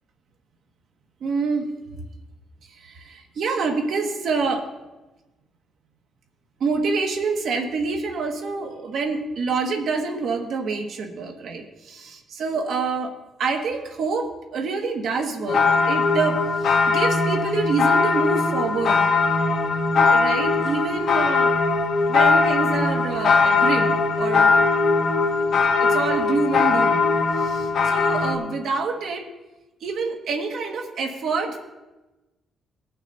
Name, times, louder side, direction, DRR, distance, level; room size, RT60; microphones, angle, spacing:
voice 1, 1.2-1.7 2.8-4.7 6.6-12.0 12.4-19.1 20.0-21.5 22.1-24.5 25.8-27.1 27.4-29.3 29.8-31.6, right 4 dB, 55° right, 4 dB, 1.4 m, -27 dB
sound 1, 15.5-28.3, left 4 dB, 50° left, 1.4 m, -20 dB
18.0 x 6.1 x 4.1 m, 1.1 s
cardioid pair, 175°, 0 cm